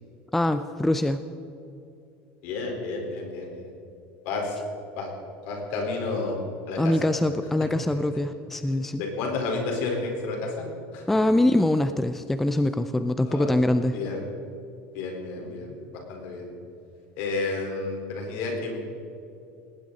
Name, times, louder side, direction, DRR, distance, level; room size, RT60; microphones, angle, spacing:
voice 1, 0.3-1.2 6.8-9.0 11.1-14.0, left 1 dB, 5° left, 10 dB, 0.4 m, -23 dB
voice 2, 2.4-3.7 4.2-4.6 5.0-5.1 5.4-6.4 6.7-7.1 9.0-11.0 13.2-13.6 13.9-14.3 14.9-16.5 17.2-18.8, left 3 dB, 55° left, 1 dB, 4.4 m, -31 dB
19.0 x 18.0 x 4.1 m, 2.8 s
cardioid pair, 175°, 5 cm